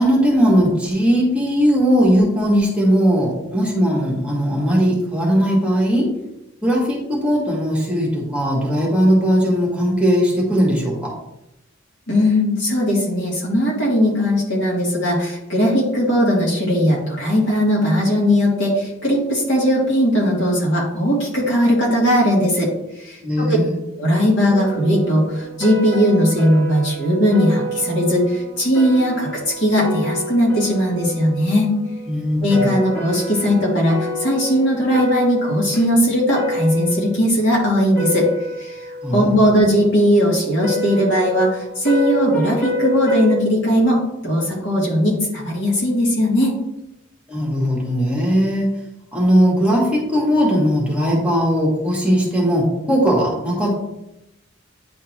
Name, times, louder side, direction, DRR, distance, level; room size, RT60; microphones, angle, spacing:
voice 1, 0.0-6.1 6.6-11.1 23.2-23.8 32.1-32.7 39.0-39.3 47.3-48.7 49.1-53.8, equal, 5° right, -4 dB, 1.4 m, -18 dB
voice 2, 12.1-22.7 23.0-23.6 24.0-31.7 32.4-38.3 38.6-38.8 39.1-46.5, equal, 70° left, -4 dB, 2.3 m, -18 dB
sound 1, 24.5-37.5 37.8-39.9 40.6-43.4, left 1 dB, 15° left, 1.9 m, -28 dB
9.4 x 3.6 x 2.9 m, 0.88 s
head